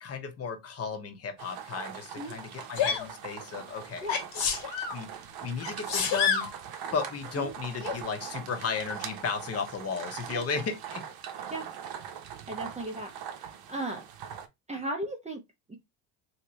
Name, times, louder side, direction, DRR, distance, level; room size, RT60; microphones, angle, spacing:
voice 1, 0.0-4.1 4.9-5.1 5.4-6.5 6.9-11.0, left 5 dB, 30° left, 1.0 m, -34 dB
sound 1, 1.4-14.5, right 8 dB, 50° right, 0.8 m, -42 dB
Sneeze, 2.8-3.1 4.1-5.0 5.6-6.5 7.8-8.0, left 7 dB, 65° left, 1.7 m, -28 dB
voice 2, 12.5-13.1 13.7-14.0 14.7-15.4 15.7-15.8, right 1 dB, 15° right, 0.6 m, -35 dB
3.2 x 2.9 x 3.0 m
supercardioid pair, 115°, 47 cm